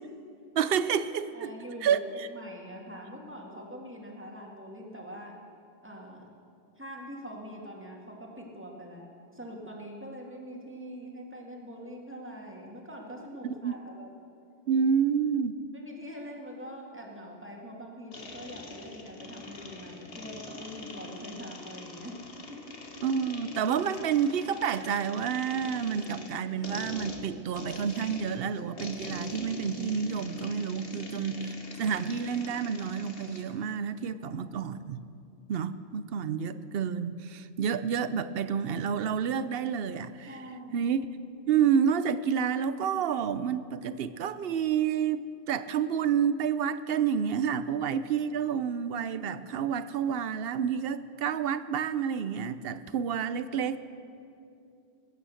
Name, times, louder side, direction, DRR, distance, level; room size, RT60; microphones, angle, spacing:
voice 1, 0.6-1.5 1.8-2.3 13.4-13.8 14.7-15.6 23.0-35.0 35.5-40.4 40.7-41.0 41.5-53.9, right 7 dB, 65° right, 14 dB, 0.8 m, -29 dB
voice 2, 1.3-2.0 2.3-5.4 5.8-6.3 6.8-14.1 15.7-22.2 22.5-22.8 34.2-34.3 40.3-40.9, equal, 10° right, -1 dB, 2.0 m, -44 dB
sound 1, 18.1-33.5, left 3 dB, 60° left, 1.5 m, -44 dB
21.0 x 9.2 x 6.4 m, 2.6 s
omnidirectional pair, 1.1 m